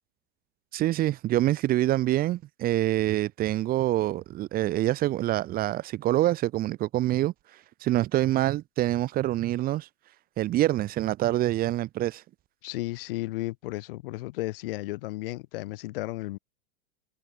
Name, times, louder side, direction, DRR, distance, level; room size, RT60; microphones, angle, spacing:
voice 1, 0.7-7.3 7.8-9.9 10.4-12.2, right 15 dB, 25° right, 1.1 m, -26 dB
voice 2, 12.6-16.4, left 19 dB, 55° left, 1.2 m, -34 dB
hypercardioid pair, 135°, 33 cm